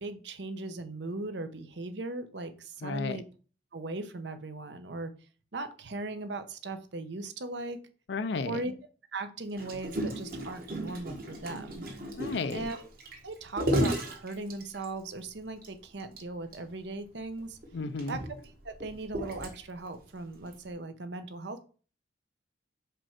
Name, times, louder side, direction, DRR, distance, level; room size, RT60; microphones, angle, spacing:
voice 1, 0.0-3.2 3.7-5.1 5.5-7.8 8.4-8.7 9.1-11.8 12.5-12.9 13.2-17.6 18.1-18.2 18.6-21.7, right 2 dB, 65° right, 0.8 m, -38 dB
voice 2, 2.8-3.2 8.1-8.6 12.2-12.7 17.7-18.2, left 4 dB, 65° left, 0.5 m, -33 dB
Gurgling, 9.6-15.1 15.6-15.7 16.0-16.2 16.5-16.6 17.4-19.9 20.5-20.7, equal, 50° right, 1.5 m, -34 dB
5.1 x 4.4 x 5.8 m
head